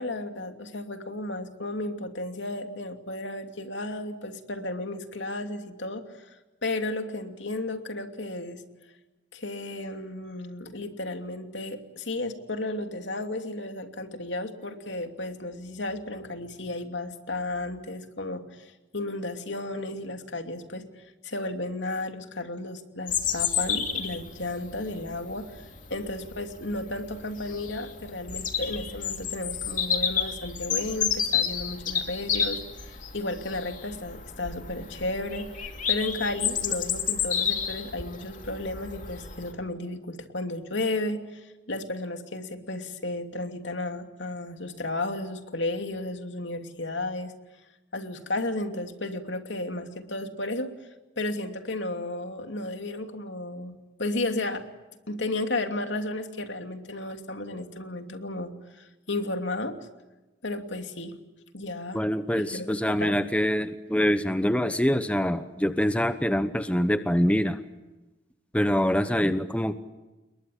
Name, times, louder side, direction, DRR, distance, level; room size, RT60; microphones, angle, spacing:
voice 1, 0.0-8.6 9.3-25.6 25.9-47.3 47.9-50.7 51.2-54.6 55.1-59.9 60.4-61.2 61.5-62.0 62.4-63.2, left 2 dB, 75° left, 6 dB, 2.8 m, -33 dB
Bird vocalization bird call bird song, 23.1-39.5, left 8 dB, 45° left, 2.7 m, -31 dB
voice 2, 61.9-67.6 68.5-69.7, equal, 5° left, 10 dB, 0.9 m, -25 dB
29.5 x 22.0 x 8.6 m, 1.1 s
head